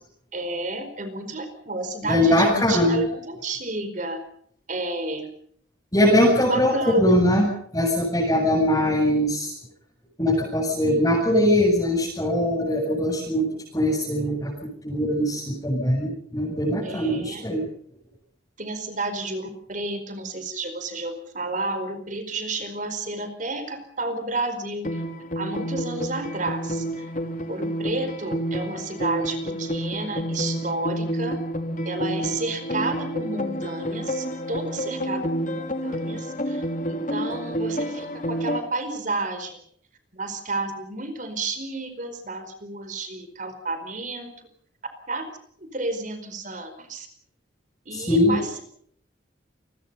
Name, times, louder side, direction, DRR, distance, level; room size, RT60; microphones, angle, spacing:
voice 1, 0.3-4.2 4.7-5.3 6.1-7.1 16.8-17.5 18.6-25.0 25.3-27.1 27.5-31.4 31.8-39.6 40.1-44.5 45.1-45.2 45.6-47.1 47.9-48.6, right 2 dB, 40° right, 9 dB, 4.7 m, -31 dB
voice 2, 2.1-3.0 5.9-9.5 10.2-17.7 47.9-48.4, left 1 dB, 20° left, -3 dB, 7.9 m, -21 dB
sound 1, 24.8-38.6, equal, 40° left, 3.0 m, -29 dB
29.0 x 22.5 x 5.6 m, 0.64 s
head